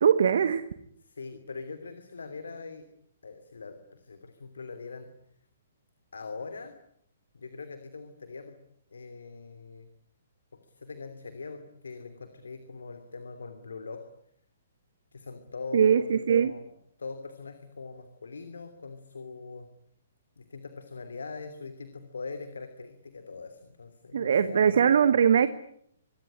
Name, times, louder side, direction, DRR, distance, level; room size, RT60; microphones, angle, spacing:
voice 1, 0.0-0.6 15.7-16.5 24.1-25.5, right 7 dB, 55° right, 13 dB, 1.4 m, -21 dB
voice 2, 1.0-2.8 3.2-5.1 6.1-6.8 7.3-8.6 8.9-9.9 10.5-14.1 15.1-16.7 17.0-19.7 20.4-24.8, left 4 dB, 65° left, 9 dB, 2.9 m, -42 dB
25.5 x 22.0 x 10.0 m, 0.71 s
figure-of-eight pair, 120°, 0 cm